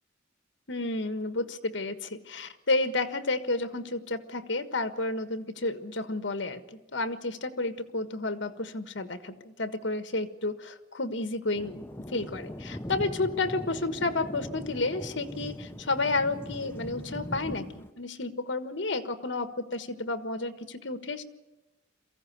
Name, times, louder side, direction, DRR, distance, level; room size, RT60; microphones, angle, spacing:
voice 1, 0.7-11.8 12.1-21.2, left 2 dB, 65° left, 10 dB, 1.5 m, -31 dB
Thunder, 11.5-17.9, equal, 10° left, 0.7 m, -40 dB
23.0 x 15.5 x 9.4 m, 1.1 s
head